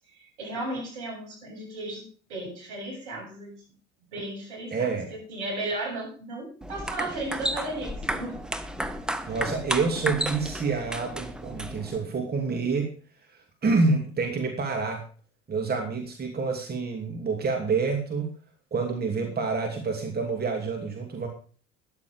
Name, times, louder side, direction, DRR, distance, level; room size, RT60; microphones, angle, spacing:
voice 1, 0.4-3.5 4.1-4.9 5.3-8.4 8.8-9.4, right 2 dB, 70° right, -1 dB, 7.9 m, -35 dB
voice 2, 4.7-5.2 9.3-12.9 13.6-15.0 15.5-18.3 18.7-21.3, right 4 dB, 25° right, 2 dB, 2.8 m, -27 dB
sound 1, 6.6-12.0, right 1 dB, ahead, 1.4 m, -32 dB
13.5 x 10.5 x 5.1 m, 0.41 s
figure-of-eight pair, 65°, 37 cm